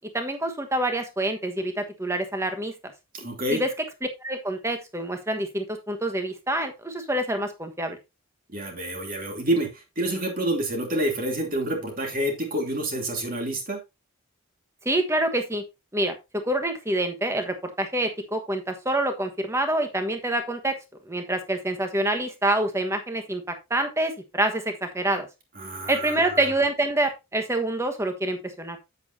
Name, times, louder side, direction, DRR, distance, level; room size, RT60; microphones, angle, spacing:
voice 1, 0.1-2.7 3.5-3.7 4.2-8.0 14.8-15.6 15.9-20.8 21.0-25.3 25.9-28.8, right 1 dB, 15° right, 7 dB, 1.2 m, -26 dB
voice 2, 3.1-3.6 8.5-13.8 25.6-26.4, right 1 dB, 40° right, 2 dB, 2.8 m, -28 dB
8.6 x 8.1 x 2.7 m, 0.24 s
head